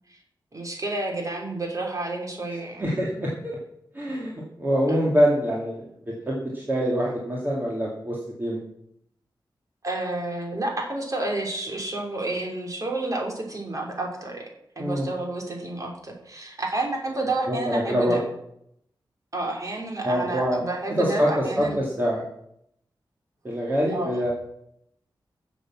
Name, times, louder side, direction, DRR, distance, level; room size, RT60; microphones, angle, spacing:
voice 1, 0.5-2.9 4.9-5.0 9.8-14.5 14.8-18.2 19.3-21.8 23.9-24.2, right 2 dB, 45° right, 1 dB, 3.1 m, -30 dB
voice 2, 2.5-3.6 3.9-5.8 6.3-8.6 14.8-15.1 17.5-18.2 20.0-20.6 21.0-22.2 23.4-24.3, equal, 25° right, -4 dB, 2.4 m, -25 dB
12.0 x 7.2 x 7.3 m, 0.76 s
wide cardioid pair, 125°, 8 cm